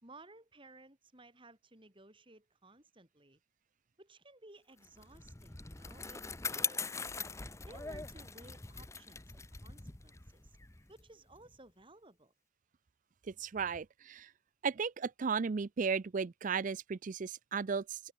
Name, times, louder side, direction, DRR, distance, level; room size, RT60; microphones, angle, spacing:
voice 1, 0.0-3.4 4.0-6.2 6.5-6.9 7.7-10.6 10.9-12.3, right 2 dB, 25° right, 5.1 m, -58 dB
Bicycle, 4.8-11.6, left 5 dB, 15° left, 0.8 m, -42 dB
voice 2, 13.3-14.3 14.6-18.0, right 5 dB, 40° right, 0.4 m, -35 dB
open air
head